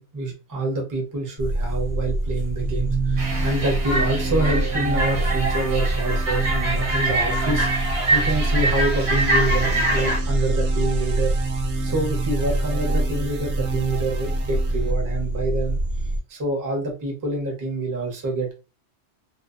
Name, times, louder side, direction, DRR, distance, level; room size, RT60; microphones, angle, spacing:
voice 1, 0.0-11.4 11.8-15.8 16.3-18.5, right 2 dB, 25° right, 1 dB, 0.5 m, -27 dB
sound 1, 1.4-16.2, right 1 dB, 55° left, 0.7 m, -25 dB
sound 2, 2.4-14.9, right 6 dB, 85° right, 0.9 m, -31 dB
sound 3, 3.2-10.2, right 1 dB, 65° right, 1.1 m, -25 dB
2.5 x 2.2 x 2.3 m, 0.32 s
omnidirectional pair, 1.2 m